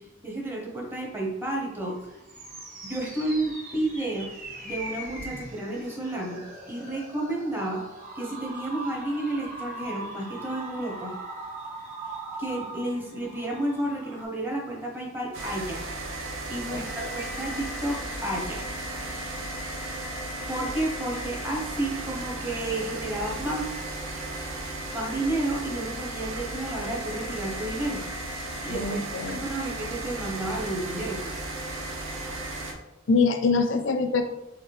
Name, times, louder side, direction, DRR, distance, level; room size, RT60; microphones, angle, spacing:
voice 1, 0.0-2.0 2.8-4.3 4.6-6.4 6.7-7.8 8.2-11.1 12.4-15.8 16.5-18.6 20.5-23.8 24.9-28.0 28.6-29.0 29.3-31.4, right 1 dB, 10° right, -2 dB, 0.9 m, -31 dB
sound 1, 1.9-14.3, right 2 dB, 40° right, 1.2 m, -40 dB
sound 2, 15.3-32.7, right 1 dB, 70° right, 0.8 m, -35 dB
voice 2, 28.7-29.4 33.1-34.2, left 4 dB, 65° left, 6 dB, 0.5 m, -24 dB
4.6 x 3.5 x 3.2 m, 0.95 s
head